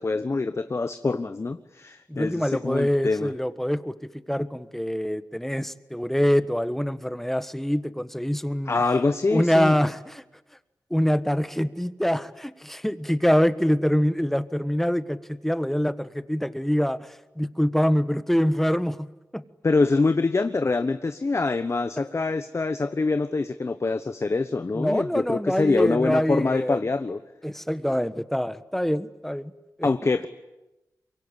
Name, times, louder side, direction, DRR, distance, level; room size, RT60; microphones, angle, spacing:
voice 1, 0.0-3.3 8.7-9.7 19.6-27.2 29.8-30.3, left 3 dB, 45° left, 10 dB, 1.2 m, -25 dB
voice 2, 2.1-3.9 4.3-8.7 9.3-10.2 10.9-19.1 19.3-19.4 24.7-26.8 27.4-29.5 29.8-29.9, equal, 5° left, 13 dB, 1.3 m, -25 dB
24.5 x 23.0 x 10.0 m, 0.99 s
cardioid pair, 60°, 7 cm